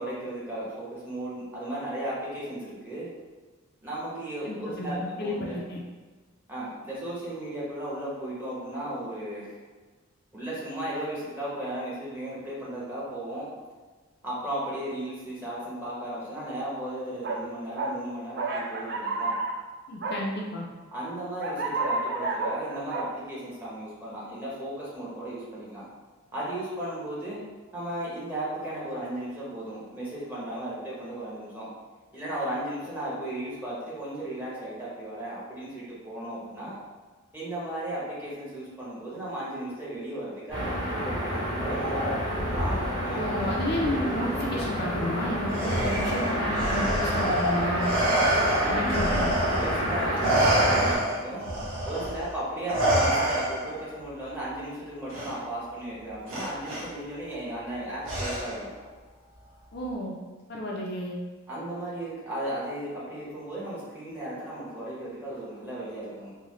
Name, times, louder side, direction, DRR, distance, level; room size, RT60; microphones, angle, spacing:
voice 1, 0.0-3.1 3.8-5.6 6.5-9.6 10.3-13.5 14.2-19.4 20.9-25.9 26.3-27.4 27.7-31.7 32.1-36.8 37.3-43.5 48.6-48.9 49.6-51.5 51.8-58.7 61.5-66.3, right 1 dB, 10° right, -8 dB, 0.9 m, -35 dB
voice 2, 4.4-4.9 5.2-5.3 5.7-5.8 19.9-20.7 43.1-47.9 48.6-49.3 59.7-60.1 60.5-61.2, left 1 dB, 50° left, -2 dB, 0.4 m, -31 dB
sound 1, 17.2-17.4 17.8-17.9 18.4-19.5 20.0-20.2 21.4-23.0, right 3 dB, 50° right, 0.3 m, -30 dB
sound 2, 40.5-51.0, equal, 25° right, 1.5 m, -28 dB
Respiratory sounds, 45.5-49.9 50.2-53.8 55.1-55.3 56.3-56.8 58.1-58.7, right 1 dB, 80° right, 0.9 m, -27 dB
3.8 x 2.1 x 3.1 m, 1.4 s
head